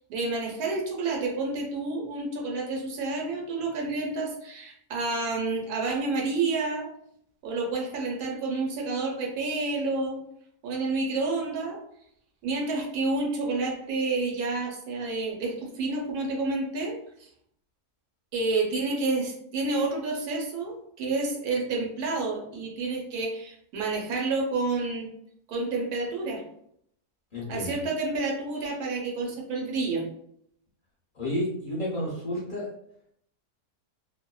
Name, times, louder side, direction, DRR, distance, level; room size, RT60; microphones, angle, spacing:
voice 1, 0.0-6.9 7.4-10.2 10.6-11.8 12.4-17.0 18.3-25.1 25.5-26.4 27.5-30.1, right 3 dB, 90° right, -1 dB, 1.2 m, -29 dB
voice 2, 27.3-27.7 31.1-32.7, left 1 dB, 45° left, -7 dB, 0.8 m, -31 dB
2.7 x 2.0 x 2.2 m, 0.71 s
omnidirectional pair, 1.6 m